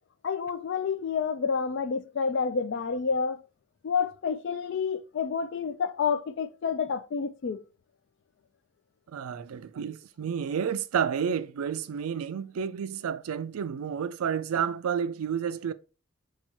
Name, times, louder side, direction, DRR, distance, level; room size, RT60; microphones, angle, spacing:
voice 1, 0.2-3.4 3.8-7.7, left 6 dB, 55° left, 0.3 m, -29 dB
voice 2, 9.1-15.7, right 7 dB, 85° right, 0.4 m, -30 dB
4.4 x 2.3 x 4.1 m
head